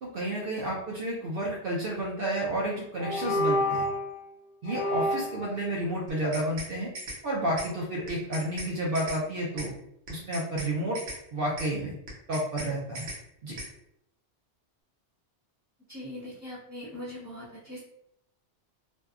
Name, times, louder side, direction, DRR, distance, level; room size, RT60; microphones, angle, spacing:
voice 1, 0.0-3.9 4.6-6.9 7.2-9.7 10.1-11.0 11.3-11.9 12.3-13.1 13.4-13.6, right 1 dB, 60° right, -3 dB, 0.6 m, -31 dB
sound 1, 2.3-2.6 3.0-4.1 4.7-5.4, left 1 dB, 85° left, 0.9 m, -28 dB
sound 2, 6.1-6.7 6.9-7.2 7.6-7.7 8.1-8.7 8.9-9.2 9.6-9.7 10.1-10.7 10.9-11.2 11.6-11.7 12.1-12.7 12.9-13.2 13.6-13.7, right 1 dB, 80° right, 1.1 m, -38 dB
voice 2, 15.9-17.8, left 1 dB, 15° left, -8 dB, 0.6 m, -41 dB
2.6 x 2.2 x 2.3 m, 0.77 s
omnidirectional pair, 1.2 m